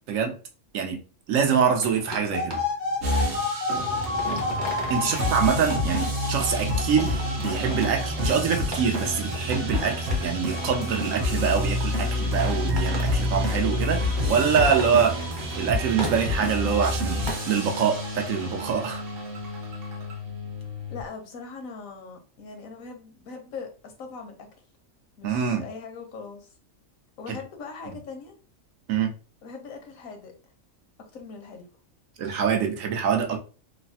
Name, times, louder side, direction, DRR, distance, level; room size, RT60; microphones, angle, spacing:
voice 1, 1.3-2.6 4.9-15.2 15.6-17.2 17.5-19.0 25.2-25.6 27.3-27.4 28.9-29.1 32.2-33.4, right 7 dB, 85° right, 1.0 m, -25 dB
sound 1, 1.8-2.9 3.6-5.1 5.4-5.5 5.7-5.9 6.6-6.7 7.0-8.0 8.7-11.1 11.6-11.9 12.2-15.5 15.8-16.6 17.0-17.8, right 1 dB, 25° right, 0.6 m, -38 dB
sound 2, 2.3-13.5, left 4 dB, 65° left, 0.4 m, -33 dB
sound 3, 3.0-21.0, left 1 dB, 55° right, 0.8 m, -28 dB
voice 2, 20.9-24.5 25.2-26.5 27.2-28.3 29.4-30.3 31.1-31.7, left 4 dB, 85° left, 1.2 m, -40 dB
3.3 x 2.0 x 2.6 m
omnidirectional pair, 1.4 m